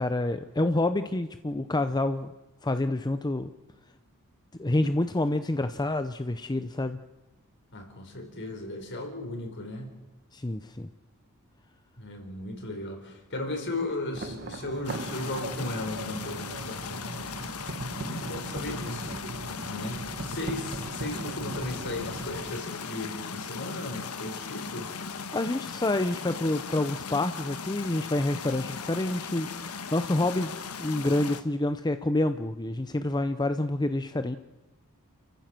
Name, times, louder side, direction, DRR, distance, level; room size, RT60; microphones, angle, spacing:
voice 1, 0.0-2.3 2.6-3.5 4.6-7.0 10.3-10.9 25.3-30.5 30.8-34.4, left 2 dB, 20° left, 10 dB, 0.6 m, -28 dB
voice 2, 7.7-9.9 12.0-17.5 18.0-19.2 19.7-24.9, left 2 dB, 55° left, 4 dB, 4.6 m, -36 dB
sound 1, 14.1-22.6, right 2 dB, 50° right, 1.3 m, -39 dB
sound 2, 14.8-31.4, left 5 dB, 80° left, 1.4 m, -38 dB
30.0 x 14.5 x 7.6 m, 1.1 s
head